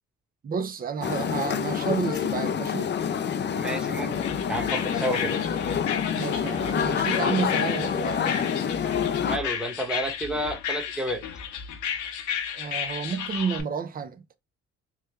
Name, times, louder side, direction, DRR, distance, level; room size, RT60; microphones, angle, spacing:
voice 1, 0.4-2.9 6.1-8.5 12.5-14.2, right 6 dB, 30° right, 0.5 m, -31 dB
sound 1, 1.0-9.4, left 7 dB, 35° left, 0.4 m, -27 dB
voice 2, 3.5-4.1 4.5-5.3 9.2-11.2, equal, 5° right, 1.0 m, -30 dB
sound 2, 4.1-13.6, left 8 dB, 75° left, 0.7 m, -33 dB
3.2 x 2.2 x 3.3 m
cardioid pair, 90°, 30 cm